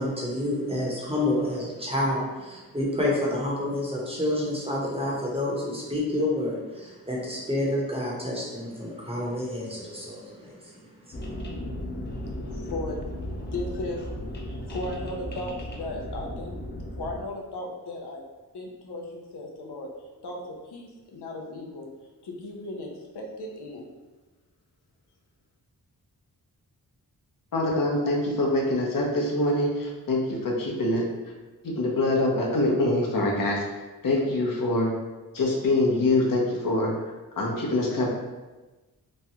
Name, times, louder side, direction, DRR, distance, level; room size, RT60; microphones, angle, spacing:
voice 1, 0.0-11.2, left 1 dB, 15° right, -5 dB, 0.8 m, -29 dB
sound 1, 11.1-17.2, left 1 dB, 30° left, 0.5 m, -35 dB
voice 2, 12.4-13.0 13.3-14.1 14.5-16.5 17.0-18.2 18.5-19.9 20.2-21.9 22.2-23.9, left 1 dB, 90° left, 0 dB, 0.6 m, -36 dB
voice 3, 27.5-31.1 31.6-33.6 34.0-34.9 35.3-36.9 37.4-38.1, left 2 dB, 60° left, -2 dB, 0.8 m, -24 dB
3.1 x 2.3 x 2.8 m, 1.2 s
cardioid pair, 60°, 39 cm